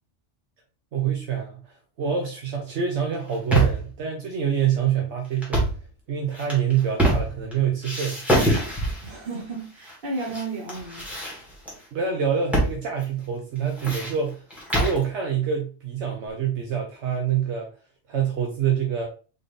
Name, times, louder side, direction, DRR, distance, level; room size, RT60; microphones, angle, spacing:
voice 1, 0.9-5.7 6.1-8.2 11.9-14.4 14.8-17.7 18.1-19.1, right 8 dB, 75° right, 1.1 m, -26 dB
sound 1, 3.1-3.9 5.4-5.8 6.3-7.5 7.8-9.1 9.8-10.4 10.7-11.7 12.5-12.8 13.0-13.1 13.6-15.0, right 1 dB, ahead, 1.6 m, -24 dB
voice 2, 9.0-11.1, right 3 dB, 50° right, 1.5 m, -33 dB
3.8 x 3.7 x 3.4 m
omnidirectional pair, 1.2 m